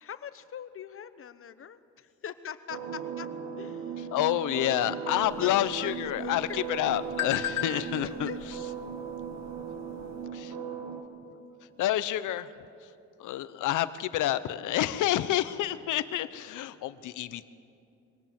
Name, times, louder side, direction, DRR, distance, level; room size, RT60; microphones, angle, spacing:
voice 1, 0.0-3.3 3.6-4.0 4.6-6.6 8.0-8.4, left 8 dB, 45° left, 12 dB, 1.0 m, -43 dB
sound 1, 2.7-11.0, right 7 dB, 65° right, 2.2 m, -37 dB
voice 2, 4.1-8.3 10.3-10.5 11.8-12.5 13.2-17.4, left 13 dB, 80° left, 14 dB, 0.9 m, -28 dB
sound 2, 5.2-10.2, left 10 dB, 60° left, 2.1 m, -39 dB
24.0 x 18.0 x 7.6 m, 2.6 s
cardioid pair, 90°, 30 cm